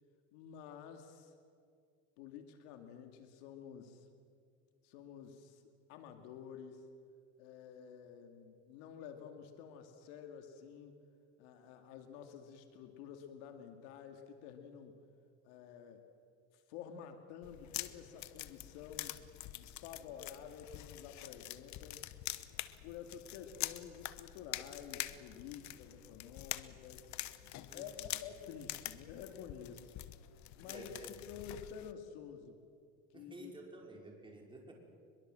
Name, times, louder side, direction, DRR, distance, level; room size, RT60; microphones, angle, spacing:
voice 1, 0.3-1.3 2.2-4.1 4.8-5.6 5.9-6.8 7.4-11.0 11.4-15.0 15.4-16.0 16.5-19.2 19.5-22.0 22.8-27.1 27.7-29.9 30.6-31.0 31.3-32.6 33.1-33.5, left 8 dB, 90° left, 5 dB, 2.4 m, -50 dB
sound 1, 17.4-31.9, left 15 dB, 55° left, 1.1 m, -46 dB
voice 2, 27.7-28.2 30.7-31.2 33.1-34.7, right 2 dB, 15° right, 0 dB, 5.0 m, -52 dB
23.5 x 22.5 x 7.7 m, 2.3 s
cardioid pair, 125°, 33 cm